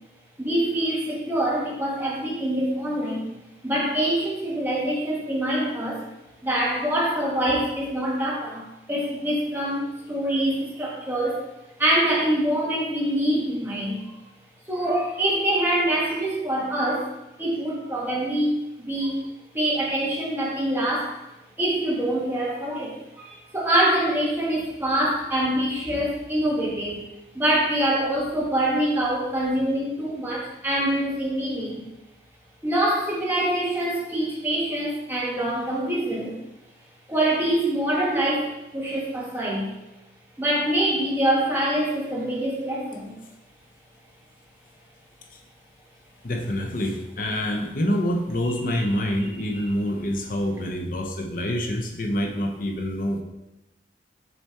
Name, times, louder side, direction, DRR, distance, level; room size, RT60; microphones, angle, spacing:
voice 1, 0.4-3.4 3.6-6.0 6.4-11.4 11.8-14.0 14.7-17.1 17.4-18.5 18.8-19.3 19.5-21.2 21.6-27.0 27.3-31.8 32.6-36.3 37.1-39.7 40.4-43.1 49.2-49.3 49.6-49.7, right 1 dB, 10° right, -5 dB, 1.4 m, -25 dB
voice 2, 46.2-53.2, equal, 50° left, 3 dB, 0.8 m, -26 dB
6.6 x 3.3 x 4.4 m, 0.94 s
head